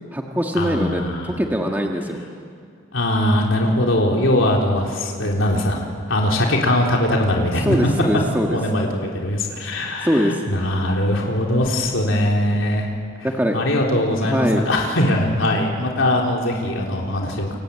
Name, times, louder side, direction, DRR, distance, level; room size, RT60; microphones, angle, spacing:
voice 1, 0.0-2.2 7.6-8.6 10.0-10.4 13.2-13.6 14.2-14.7, equal, 10° right, 1 dB, 1.5 m, -22 dB
voice 2, 0.6-1.3 2.9-7.8 8.5-12.9 13.5-17.6, left 1 dB, 80° left, -1 dB, 3.8 m, -21 dB
28.5 x 23.5 x 8.8 m, 2.3 s
head